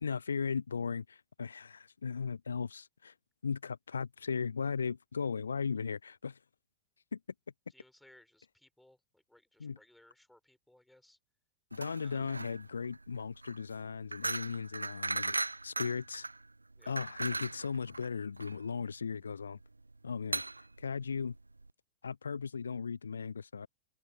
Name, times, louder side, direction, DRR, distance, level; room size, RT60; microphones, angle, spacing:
voice 1, 0.0-3.1 3.4-6.4 7.1-7.2 9.6-9.8 11.7-15.4 15.6-16.3 16.9-19.6 20.0-20.4 20.8-21.3 22.0-23.7, left 5 dB, 75° left, 0.3 m, -37 dB
voice 2, 7.7-11.2 12.0-12.2 16.8-17.0, left 1 dB, 5° left, 5.2 m, -63 dB
sound 1, 11.7-21.7, right 2 dB, 80° right, 0.9 m, -39 dB
open air
figure-of-eight pair, 90°, 0 cm